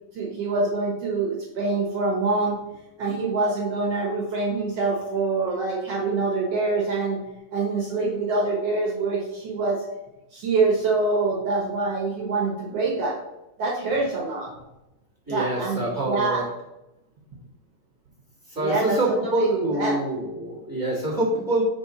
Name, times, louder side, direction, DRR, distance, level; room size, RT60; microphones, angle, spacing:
voice 1, 0.2-2.6 3.0-7.2 7.5-9.8 10.3-13.2 13.6-14.5 15.3-16.4 18.6-19.0 19.2-20.0, right 3 dB, 60° right, -2 dB, 1.9 m, -25 dB
voice 2, 15.3-16.5 18.5-21.6, right 1 dB, 10° right, -4 dB, 1.0 m, -25 dB
5.4 x 4.4 x 5.6 m, 0.94 s
omnidirectional pair, 3.7 m